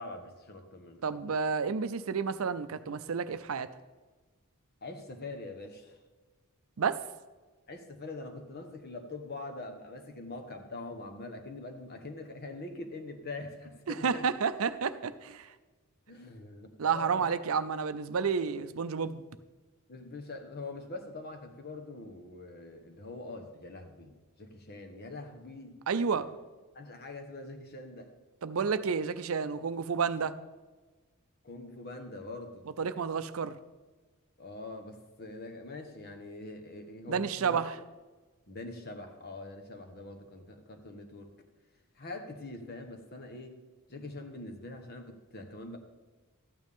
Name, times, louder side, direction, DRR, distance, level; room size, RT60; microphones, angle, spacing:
voice 1, 0.0-1.0 1.3-1.4 4.8-6.0 7.7-14.3 16.1-17.3 19.9-25.8 26.1-26.3 26.7-28.1 31.4-32.7 34.4-37.6 38.5-41.3 41.9-43.6 43.9-45.8, left 2 dB, 45° left, 5 dB, 1.3 m, -43 dB
voice 2, 1.0-3.7 6.8-7.1 13.9-15.5 16.8-19.2 25.9-26.3 28.4-30.4 32.8-33.6 37.1-37.8, right 5 dB, 70° right, 12 dB, 0.5 m, -30 dB
13.0 x 9.0 x 3.6 m, 1.3 s
head